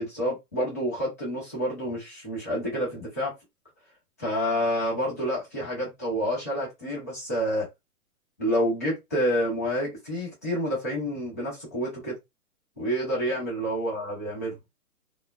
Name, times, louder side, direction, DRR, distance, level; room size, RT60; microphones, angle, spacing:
voice 1, 0.0-3.3 4.2-7.7 8.4-12.1 12.8-14.6, equal, 10° left, 0.3 m, -28 dB
2.1 x 2.0 x 3.0 m
hypercardioid pair, 140°, 44 cm